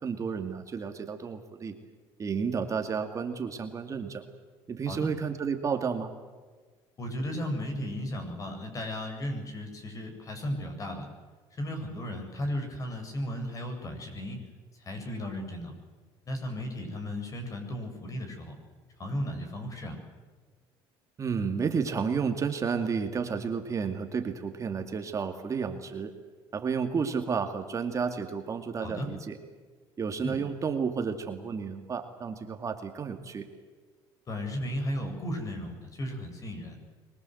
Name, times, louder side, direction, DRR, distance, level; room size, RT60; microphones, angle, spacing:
voice 1, 0.0-1.8 2.2-4.3 4.7-6.1 21.2-26.1 26.5-29.4 30.0-33.5, right 6 dB, 35° right, 6 dB, 2.4 m, -31 dB
voice 2, 7.0-11.1 11.6-14.4 14.8-15.7 16.3-18.5 19.0-20.0 28.8-29.1 30.2-30.4 34.3-36.8, left 1 dB, 35° left, 5 dB, 8.0 m, -35 dB
25.0 x 22.0 x 8.0 m, 1.4 s
cardioid pair, 110°, 10 cm